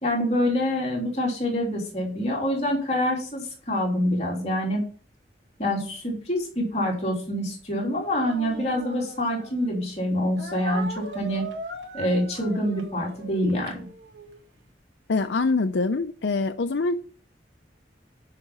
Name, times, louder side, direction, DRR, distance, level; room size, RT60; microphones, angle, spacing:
voice 1, 0.0-4.8 5.6-11.4 11.9-13.8, left 1 dB, 35° left, -2 dB, 3.1 m, -26 dB
Speech, 8.2-9.7 10.4-14.4, right 3 dB, 85° right, 2.0 m, -39 dB
voice 2, 15.1-16.9, left 3 dB, 80° left, 8 dB, 0.6 m, -24 dB
10.5 x 5.8 x 5.3 m, 0.42 s
head